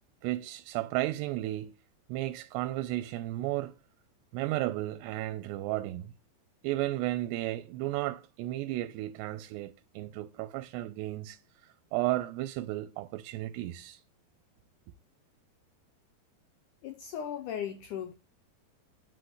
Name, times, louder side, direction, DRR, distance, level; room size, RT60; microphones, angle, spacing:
voice 1, 0.2-1.7 2.1-3.8 4.3-6.1 6.6-14.0, right 16 dB, 90° right, 2.8 m, -34 dB
voice 2, 16.8-18.1, left 9 dB, 85° left, 1.8 m, -37 dB
9.9 x 6.1 x 7.8 m
omnidirectional pair, 4.7 m